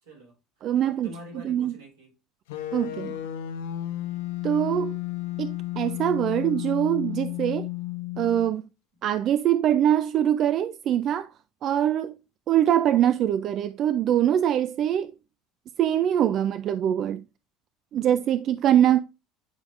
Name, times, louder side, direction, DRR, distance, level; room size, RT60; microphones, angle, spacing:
voice 1, 0.0-2.1, left 1 dB, 90° right, 4.1 m, -46 dB
voice 2, 0.6-1.7 2.7-3.2 4.4-5.0 5.4-7.7 8.2-8.6 9.0-11.3 11.6-12.2 12.5-15.1 15.8-17.2 17.9-19.0, right 10 dB, 50° right, 0.3 m, -23 dB
sound 1, 2.5-8.6, left 15 dB, 80° left, 0.7 m, -33 dB
9.5 x 4.7 x 2.5 m
hypercardioid pair, 75°, 0 cm